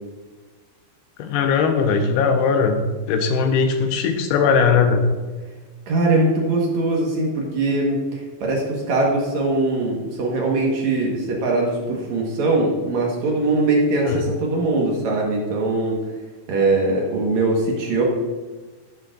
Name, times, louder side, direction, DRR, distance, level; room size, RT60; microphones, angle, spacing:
voice 1, 1.2-5.0 14.0-14.2, left 5 dB, 80° left, 6 dB, 2.4 m, -19 dB
voice 2, 5.9-16.0 16.5-18.0, right 2 dB, 65° right, -2 dB, 1.9 m, -21 dB
12.0 x 9.6 x 2.5 m, 1.3 s
omnidirectional pair, 5.0 m